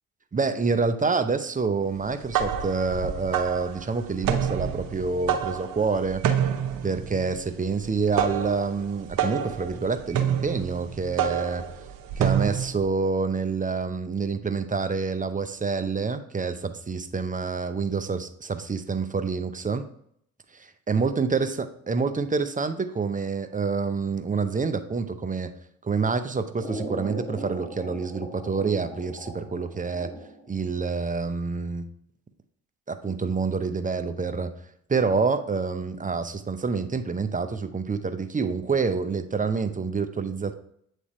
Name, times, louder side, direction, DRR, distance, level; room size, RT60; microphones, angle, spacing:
voice 1, 0.3-6.2 6.8-11.6 12.2-19.8 20.5-21.5 21.9-25.5 25.8-30.1 30.5-31.9 32.9-34.5 34.9-40.5, right 4 dB, 20° right, 10 dB, 0.7 m, -27 dB
sound 1, 2.0-12.8, right 8 dB, 65° right, 0.9 m, -28 dB
sound 2, 26.6-30.6, right 1 dB, 5° left, 2.6 m, -38 dB
8.5 x 3.4 x 4.2 m, 0.68 s
hypercardioid pair, 60°, 37 cm